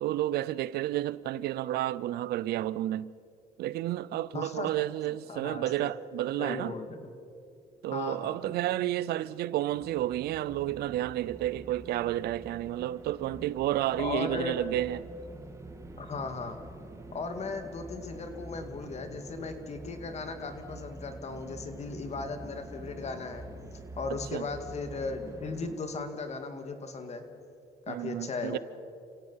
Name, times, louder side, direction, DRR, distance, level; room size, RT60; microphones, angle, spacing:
voice 1, 0.0-3.1 3.6-6.7 7.8-15.0 24.3-24.5 27.9-28.6, right 14 dB, 70° right, 0.6 m, -31 dB
voice 2, 4.3-5.9 6.4-7.1 7.9-8.6 14.0-14.6 16.0-16.6 17.1-23.4 24.0-27.2 27.9-28.6, left 4 dB, 40° left, 2.3 m, -37 dB
sound 1, 9.7-25.8, right 1 dB, 15° right, 1.6 m, -46 dB
29.5 x 16.5 x 5.8 m
cardioid pair, 110°, 17 cm